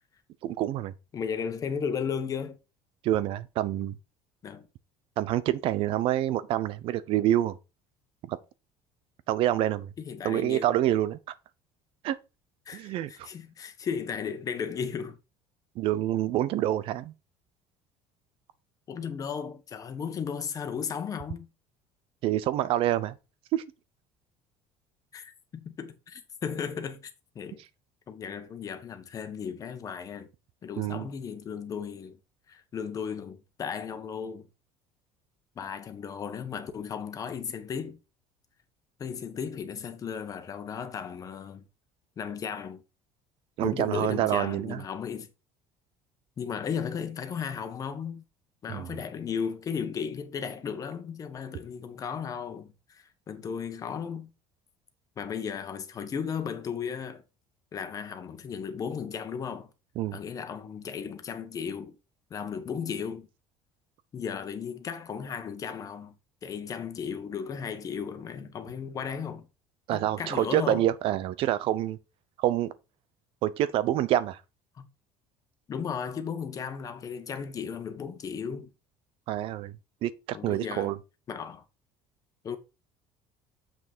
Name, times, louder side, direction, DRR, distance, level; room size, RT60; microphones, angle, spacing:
voice 1, 0.4-0.9 3.0-4.0 5.2-7.6 8.3-8.4 9.3-9.9 10.2-11.2 12.0-12.2 12.7-13.3 15.8-17.1 22.2-23.1 23.5-23.6 30.8-31.1 43.6-44.8 48.7-48.9 60.0-60.2 69.9-72.0 72.4-72.7 73.4-74.4 79.3-79.8 80.0-81.0, right 13 dB, 60° right, 0.8 m, -27 dB
voice 2, 1.1-2.6 4.4-4.7 10.0-10.7 12.7-15.2 18.9-21.5 25.1-27.1 27.3-27.6 28.1-30.3 30.6-32.2 32.5-34.5 35.5-38.0 39.0-41.6 42.2-42.8 43.6-45.3 46.4-48.2 48.6-54.3 55.2-57.2 57.7-59.7 60.1-62.0 62.3-63.3 64.1-66.2 66.4-69.5 69.9-70.9 74.7-74.9 75.7-78.7 80.3-80.9 81.3-81.6 82.4-82.6, left 7 dB, 30° left, 1.4 m, -35 dB
7.2 x 6.2 x 4.4 m
cardioid pair, 145°, 11 cm